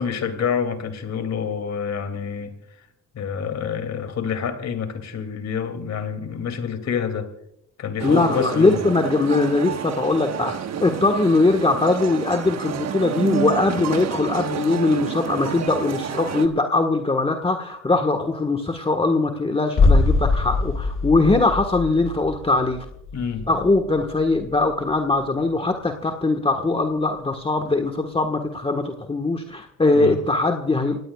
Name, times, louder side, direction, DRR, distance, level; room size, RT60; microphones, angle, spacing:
voice 1, 0.0-2.5 2.8-2.9 3.1-7.3 7.8-8.8 23.1-23.5 29.9-30.2, left 7 dB, 60° left, 7 dB, 2.6 m, -27 dB
voice 2, 8.0-22.8 23.5-31.0, left 3 dB, 20° left, 4 dB, 1.4 m, -21 dB
sound 1, 8.0-16.5, right 8 dB, 60° right, 1.3 m, -29 dB
sound 2, 19.8-25.5 25.8-25.9, left 3 dB, 45° left, 1.5 m, -23 dB
29.5 x 17.5 x 2.4 m, 0.71 s
cardioid pair, 90°, 30 cm